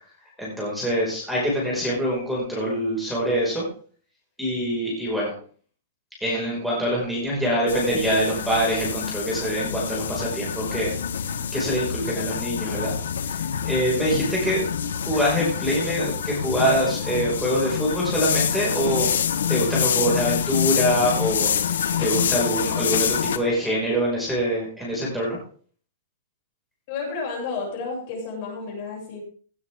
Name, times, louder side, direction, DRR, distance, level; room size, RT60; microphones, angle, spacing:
voice 1, 0.4-3.7 4.4-5.3 6.2-10.9 11.5-12.9 13.6-14.7 14.9-19.1 19.5-25.4, equal, ahead, -7 dB, 5.5 m, -24 dB
sound 1, 7.7-23.4, left 8 dB, 85° left, 1.3 m, -26 dB
voice 2, 26.9-29.2, left 4 dB, 40° left, -1 dB, 7.0 m, -31 dB
17.0 x 9.6 x 3.7 m, 0.44 s
hypercardioid pair, 160°, 0 cm